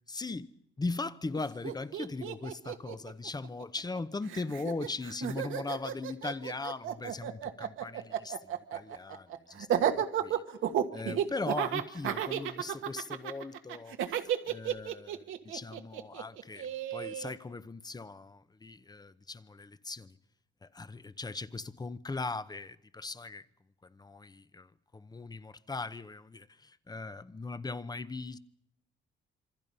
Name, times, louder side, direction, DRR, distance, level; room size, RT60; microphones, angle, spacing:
voice 1, 0.1-0.5 0.8-10.4 10.9-14.0 14.2-20.2 20.6-23.5 23.8-28.4, left 3 dB, 20° left, 0.9 m, -39 dB
Laughter, 1.3-1.4 1.6-4.0 4.3-17.3, right 10 dB, 85° right, 1.6 m, -33 dB
26.5 x 24.5 x 5.5 m
cardioid pair, 90°, 20 cm